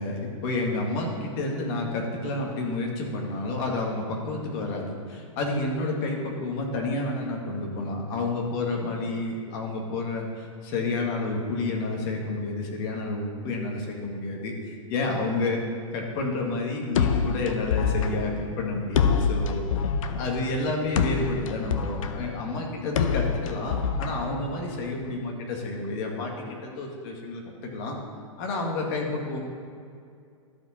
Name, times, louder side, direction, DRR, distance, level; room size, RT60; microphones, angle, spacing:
voice 1, 0.0-15.6 15.9-19.6 20.2-28.0 28.4-29.4, left 2 dB, 45° left, 0 dB, 1.8 m, -30 dB
sound 1, 16.9-24.9, left 6 dB, 70° left, 0.7 m, -27 dB
13.0 x 4.9 x 4.3 m, 2.3 s
hypercardioid pair, 135°, 17 cm